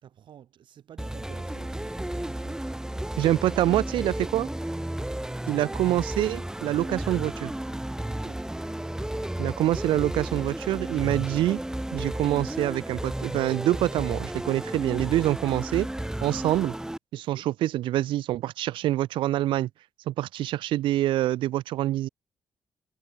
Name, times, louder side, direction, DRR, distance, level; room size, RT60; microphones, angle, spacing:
voice 1, 0.0-2.7 5.6-5.8 8.0-8.5 17.1-17.5, right 10 dB, 70° right, 5.6 m, -50 dB
sound 1, 1.0-17.0, right 1 dB, 5° right, 0.8 m, -33 dB
voice 2, 3.2-4.5 5.5-7.5 9.4-11.6 11.9-15.9 16.2-16.7 17.1-19.7 20.1-22.1, right 14 dB, 90° right, 1.3 m, -26 dB
cardioid pair, 70°, 8 cm